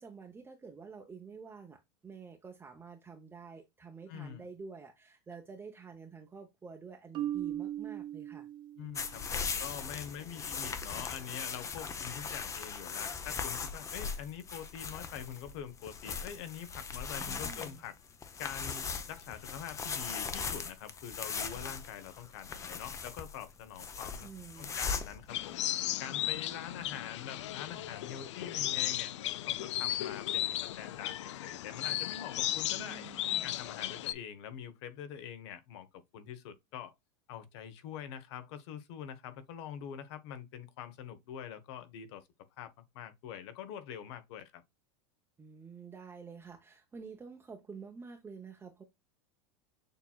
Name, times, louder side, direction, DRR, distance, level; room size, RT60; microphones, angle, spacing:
voice 1, 0.0-8.5 17.2-17.8 24.2-24.8 32.8-33.6 45.4-48.8, right 5 dB, 15° right, 0.7 m, -49 dB
voice 2, 4.1-4.5 8.8-17.9 18.4-24.3 24.6-25.6 26.0-29.1 29.5-33.0 33.4-36.9 37.3-42.2 42.6-44.6, left 9 dB, 65° left, 1.0 m, -45 dB
Marimba xylophone, 7.1-9.2, right 12 dB, 30° right, 0.3 m, -38 dB
sound 1, 9.0-25.3, left 5 dB, 20° left, 0.6 m, -39 dB
sound 2, 25.3-34.1, left 13 dB, 90° left, 0.4 m, -35 dB
6.7 x 2.9 x 2.3 m
supercardioid pair, 125°, 15 cm